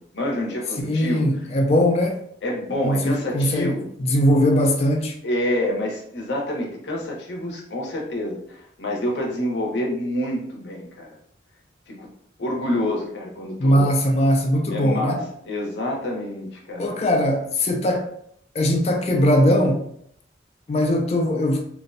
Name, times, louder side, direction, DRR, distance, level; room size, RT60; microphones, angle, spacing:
voice 1, 0.0-1.2 2.4-3.9 5.2-11.2 11.9-12.1 12.4-13.9 14.7-17.0, left 1 dB, 70° left, 0.7 m, -27 dB
voice 2, 0.8-2.2 2.8-5.2 13.6-15.2 16.8-18.1 18.5-19.8 20.7-21.7, equal, 35° left, 0.3 m, -20 dB
2.6 x 2.0 x 2.5 m
head